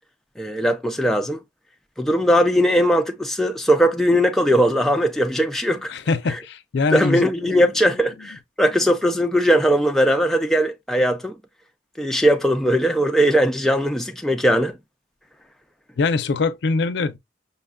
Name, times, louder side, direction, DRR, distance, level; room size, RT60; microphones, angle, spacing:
voice 1, 0.4-1.4 2.0-6.0 6.3-6.4 6.9-11.4 12.0-14.8, equal, ahead, 0.3 m, -19 dB
voice 2, 5.9-7.6 16.0-17.2, left 4 dB, 65° left, 0.4 m, -23 dB
5.6 x 2.2 x 2.3 m
head